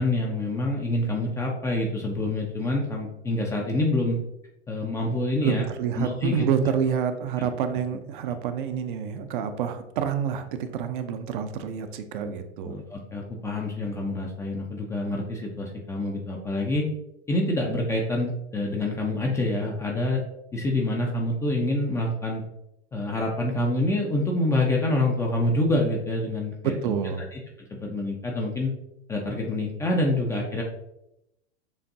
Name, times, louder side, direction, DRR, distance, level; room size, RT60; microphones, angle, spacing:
voice 1, 0.0-4.2 4.7-5.6 5.9-6.5 7.4-7.5 12.2-12.3 12.6-16.9 17.3-20.2 20.5-22.4 22.9-26.8 27.3-27.4 27.7-28.7 29.1-30.6, left 1 dB, 10° left, -1 dB, 0.4 m, -26 dB
voice 2, 5.4-12.8 26.6-27.3, right 7 dB, 45° right, 8 dB, 0.5 m, -28 dB
6.9 x 2.5 x 2.6 m, 0.84 s
figure-of-eight pair, 95°, 35 cm